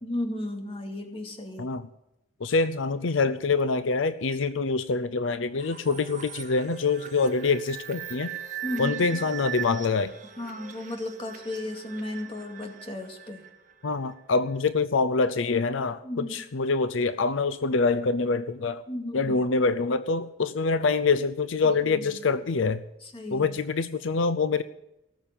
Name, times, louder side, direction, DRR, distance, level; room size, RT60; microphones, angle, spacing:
voice 1, 0.0-1.7 8.6-9.3 10.4-13.4 16.0-16.4 18.9-19.4 21.8-22.3 23.0-23.5, left 1 dB, 30° left, 3 dB, 2.3 m, -35 dB
voice 2, 2.4-8.3 8.8-10.1 13.8-18.8 19.1-22.8 23.3-24.6, left 4 dB, 75° left, 12 dB, 0.6 m, -25 dB
sound 1, 5.6-14.2, right 9 dB, 40° right, 1.8 m, -40 dB
18.5 x 7.2 x 9.0 m, 0.88 s
head